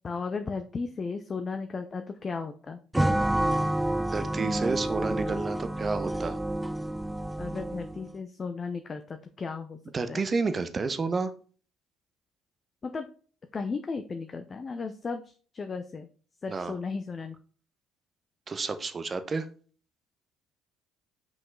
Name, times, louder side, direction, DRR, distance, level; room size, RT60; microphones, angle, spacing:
voice 1, 0.0-2.8 7.4-9.8 10.1-10.2 12.8-13.1 13.5-16.1 16.4-17.4, left 4 dB, 35° left, 7 dB, 0.7 m, -35 dB
sound 1, 2.9-8.1, right 1 dB, 10° right, 0.4 m, -29 dB
voice 2, 4.1-6.4 9.9-11.3 16.5-16.7 18.5-19.5, right 4 dB, 35° right, 10 dB, 0.9 m, -30 dB
5.9 x 5.1 x 3.8 m, 0.40 s
figure-of-eight pair, 50°, 0 cm